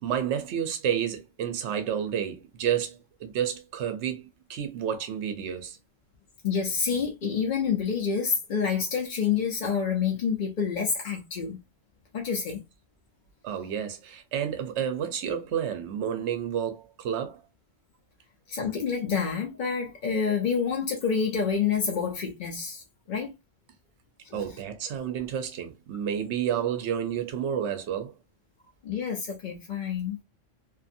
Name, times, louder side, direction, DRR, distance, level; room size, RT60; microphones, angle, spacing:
voice 1, 0.0-5.8 13.4-17.4 24.3-28.1, right 9 dB, 70° right, 0.9 m, -30 dB
voice 2, 6.4-11.6 12.1-12.6 18.5-22.8 23.1-23.3 24.3-24.4 28.8-30.2, left 6 dB, 50° left, 0.6 m, -28 dB
2.6 x 2.5 x 2.6 m
omnidirectional pair, 1.3 m